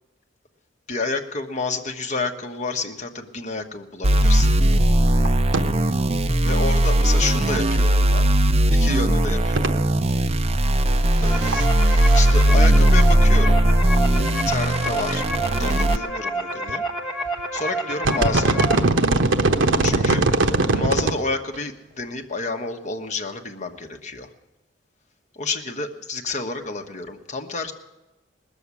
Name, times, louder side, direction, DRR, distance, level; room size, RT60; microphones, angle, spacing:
voice 1, 0.9-4.5 6.4-8.3 8.7-9.8 10.4-10.5 11.2-11.5 12.1-13.6 14.3-16.8 17.5-18.7 19.8-20.2 20.7-24.3 25.3-27.7, left 3 dB, 40° left, 5 dB, 1.2 m, -29 dB
sound 1, 4.0-16.0, right 1 dB, 35° right, 0.5 m, -18 dB
sound 2, 4.7-4.8 5.1-5.3 5.5-5.6 5.9-6.0 8.3-8.4 9.5-9.7 11.3-11.7 11.9-12.7 13.0-13.1 14.0-14.1 14.5-14.6 14.9-15.0 15.3-15.7 16.7-16.9 17.4-17.6 17.9-21.2 21.5-21.6, right 2 dB, 75° right, 1.0 m, -21 dB
sound 3, 11.1-18.8, right 1 dB, ahead, 1.2 m, -29 dB
19.5 x 7.3 x 9.7 m, 1.0 s
head